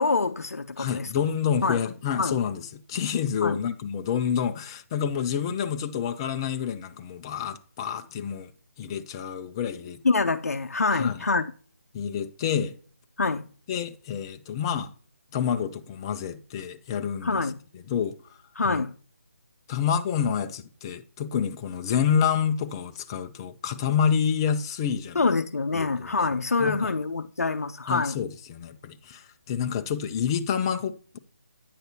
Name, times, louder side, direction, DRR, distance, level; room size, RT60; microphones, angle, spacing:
voice 1, 0.0-1.1 1.6-1.8 2.2-2.4 3.4-3.6 10.0-11.5 13.2-13.4 17.2-17.6 18.6-18.9 25.1-28.2, left 4 dB, 80° left, 0.5 m, -25 dB
voice 2, 0.8-2.6 2.9-8.5 8.8-10.0 10.9-11.2 11.9-12.8 13.7-14.9 15.3-17.4 17.9-18.2 18.6-18.8 19.7-25.2 25.7-26.1 26.6-26.9 27.9-31.2, left 8 dB, 20° left, 0.4 m, -28 dB
9.2 x 6.4 x 2.8 m
figure-of-eight pair, 155°, 8 cm